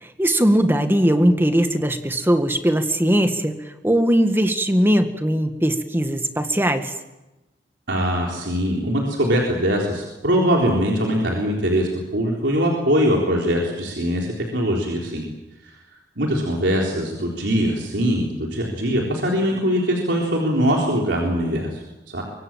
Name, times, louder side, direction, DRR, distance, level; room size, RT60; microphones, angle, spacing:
voice 1, 0.0-3.6 3.8-6.9, equal, 15° right, 7 dB, 1.7 m, -19 dB
voice 2, 7.9-15.3 15.6-15.8 16.2-22.2, equal, 75° right, -1 dB, 3.8 m, -22 dB
24.5 x 23.0 x 7.5 m, 1.0 s
head